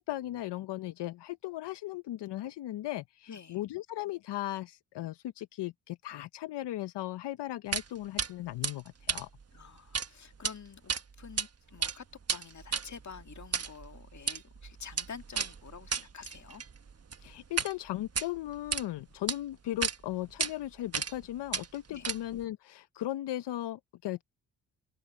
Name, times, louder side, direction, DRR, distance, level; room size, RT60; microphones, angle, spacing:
voice 1, 0.0-9.3 17.2-24.2, left 14 dB, 75° left, 0.8 m, -37 dB
voice 2, 3.3-3.6 9.5-16.6 21.9-22.1, left 6 dB, 40° left, 2.2 m, -48 dB
sound 1, 7.7-7.9 8.2-8.3 8.6-10.1 10.3-10.5 10.9-11.5 11.7-17.7 18.0-18.8 19.3-19.4 19.8-20.0 20.4-20.5 20.9-21.2 21.5-22.4, right 6 dB, 35° right, 1.3 m, -34 dB
cardioid pair, 75°, 42 cm